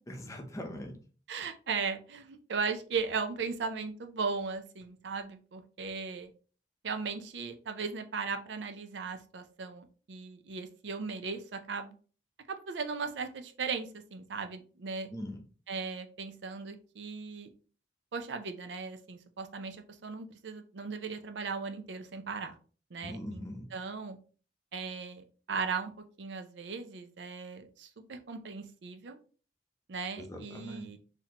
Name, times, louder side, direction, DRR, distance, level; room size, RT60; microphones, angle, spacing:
voice 1, 0.2-1.0 15.1-15.4 23.0-23.7 30.2-30.9, equal, 20° left, 2 dB, 0.7 m, -41 dB
voice 2, 1.3-6.3 6.8-11.9 12.5-15.1 15.7-17.5 18.1-22.6 22.9-24.2 24.7-25.9 26.2-29.2 29.9-31.0, right 5 dB, 85° right, 7 dB, 0.5 m, -37 dB
4.1 x 2.7 x 2.9 m, 0.39 s
head